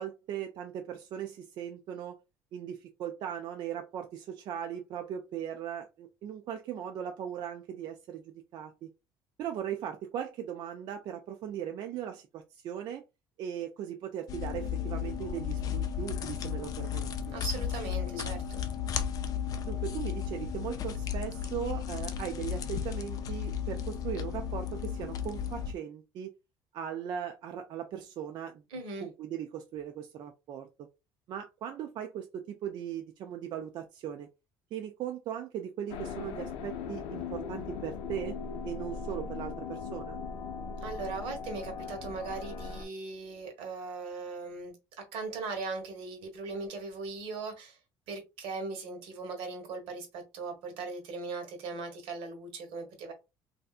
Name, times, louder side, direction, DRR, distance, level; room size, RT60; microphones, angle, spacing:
voice 1, 0.0-2.2 2.5-8.2 8.5-8.9 9.4-13.0 13.4-17.3 19.6-26.3 26.7-28.6 29.0-30.9 31.3-34.3 34.7-38.4 38.6-40.2, right 9 dB, 50° right, 0.4 m, -38 dB
sound 1, 14.3-25.7, left 8 dB, 40° left, 0.4 m, -34 dB
voice 2, 17.3-18.6 28.7-29.1 40.8-44.7 45.1-47.8 48.1-53.1, right 4 dB, 75° right, 1.2 m, -39 dB
sound 2, 35.9-42.9, left 5 dB, 85° left, 0.5 m, -39 dB
3.3 x 2.7 x 2.4 m
cardioid pair, 150°, 9 cm